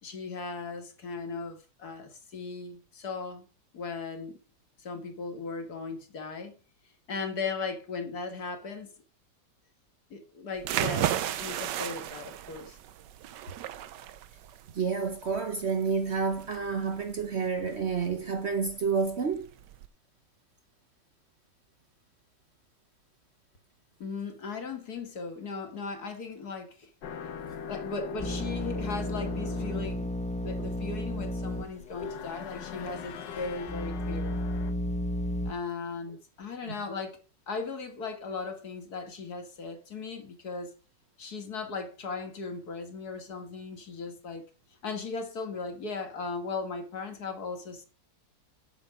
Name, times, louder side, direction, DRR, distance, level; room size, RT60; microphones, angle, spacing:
voice 1, 0.0-3.5 3.7-4.4 4.8-6.6 7.1-8.9 10.1-12.8 24.0-26.9 27.7-30.1 30.4-34.4 35.5-37.2 37.5-40.7 41.2-44.4 44.8-47.8, left 4 dB, 60° left, 2.2 m, -37 dB
sound 1, 10.6-19.9, right 11 dB, 85° right, 1.4 m, -35 dB
voice 2, 14.7-19.5 36.6-36.8, right 5 dB, 50° right, 1.0 m, -29 dB
sound 2, 27.0-34.7, left 7 dB, 90° left, 1.6 m, -41 dB
sound 3, 28.2-31.7 32.0-32.1 32.8-35.5, left 1 dB, 10° left, 0.3 m, -33 dB
8.0 x 7.6 x 4.8 m
omnidirectional pair, 1.9 m